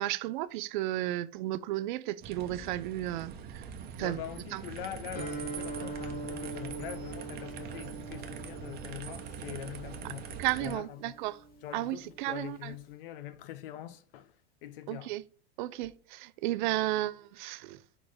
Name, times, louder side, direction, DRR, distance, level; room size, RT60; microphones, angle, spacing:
voice 1, 0.0-3.7 4.0-4.2 4.5-4.6 10.0-10.1 10.4-11.4 11.7-12.7 14.9-15.2 15.6-17.8, right 16 dB, 55° right, 0.4 m, -33 dB
sound 1, 2.2-10.8, right 7 dB, 30° right, 1.0 m, -43 dB
voice 2, 4.0-11.1 11.6-15.1, left 11 dB, 60° left, 0.8 m, -44 dB
Guitar, 5.1-12.9, right 2 dB, 30° left, 1.8 m, -43 dB
6.2 x 3.8 x 5.0 m
hypercardioid pair, 125°, 30 cm